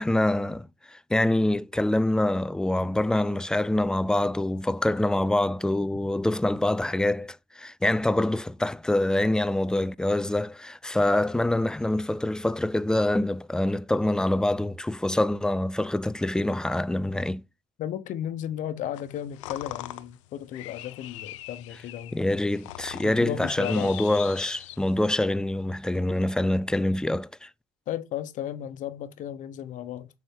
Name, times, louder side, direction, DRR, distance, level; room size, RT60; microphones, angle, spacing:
voice 1, 0.0-17.4 22.1-27.5, left 1 dB, 5° left, 0.4 m, -25 dB
voice 2, 17.8-22.2 23.0-23.9 27.9-30.1, left 10 dB, 55° left, 1.0 m, -34 dB
sound 1, 18.9-25.2, left 15 dB, 80° left, 0.6 m, -41 dB
7.1 x 4.2 x 3.8 m
hypercardioid pair, 80°, 16 cm